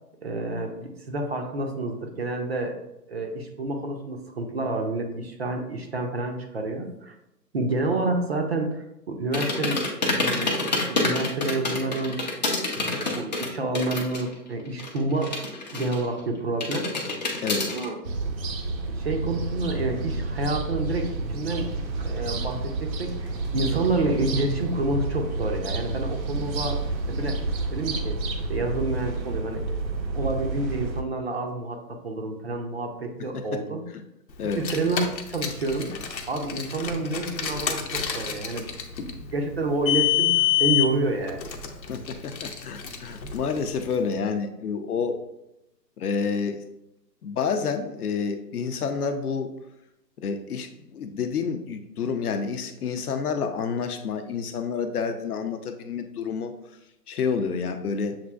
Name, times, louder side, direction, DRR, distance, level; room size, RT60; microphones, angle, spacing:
voice 1, 0.2-2.8 3.1-7.1 7.5-9.8 10.1-10.6 10.9-12.2 12.7-15.4 15.7-16.9 17.7-18.0 18.9-21.7 22.0-26.8 27.1-27.4 27.7-28.2 28.5-29.6 30.1-33.8 34.5-35.9 36.3-38.7 39.3-41.4, right 2 dB, 40° right, 3 dB, 0.5 m, -29 dB
sound 1, 9.3-14.3 14.6-16.2 16.6-17.8, left 2 dB, 30° left, 0.5 m, -27 dB
sound 2, 18.0-31.0, right 3 dB, 90° right, 0.9 m, -30 dB
Car, 34.4-44.0, left 10 dB, 90° left, 0.8 m, -28 dB
voice 2, 41.9-45.2 46.0-46.6 47.2-49.5 50.2-56.5 57.1-58.2, left 5 dB, 65° left, 8 dB, 0.7 m, -29 dB
7.2 x 2.5 x 2.3 m, 0.85 s
hypercardioid pair, 150°, 50 cm